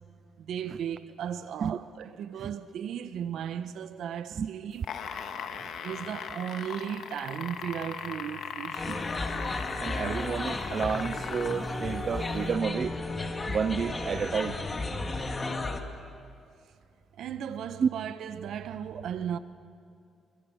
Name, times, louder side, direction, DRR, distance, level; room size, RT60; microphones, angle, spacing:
voice 1, 0.4-5.0 5.8-9.1 17.1-19.4, right 9 dB, 75° right, 1.2 m, -36 dB
sound 1, 4.7-11.7 12.5-12.6, left 7 dB, 70° left, 1.9 m, -38 dB
sound 2, 8.7-15.8, left 2 dB, 25° left, 2.3 m, -33 dB
voice 2, 9.8-12.9 13.5-14.6 17.8-17.9, right 6 dB, 50° right, 0.5 m, -30 dB
27.5 x 23.5 x 6.4 m
cardioid pair, 90°, 0 cm